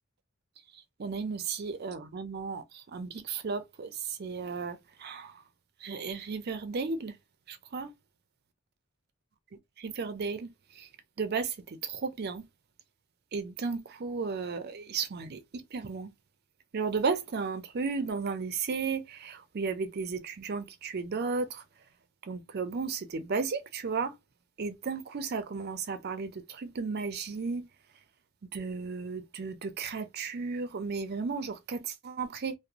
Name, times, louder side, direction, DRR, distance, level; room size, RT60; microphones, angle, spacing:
voice 1, 1.0-2.6 2.9-3.9 4.2-5.3 5.8-7.1 7.5-7.9 9.8-10.5 11.2-11.5 12.0-12.4 13.3-16.1 16.7-21.6 22.3-24.1 24.6-26.3 26.6-27.7 28.5-32.5, right 4 dB, 50° right, 0.5 m, -34 dB
2.5 x 2.0 x 2.8 m
head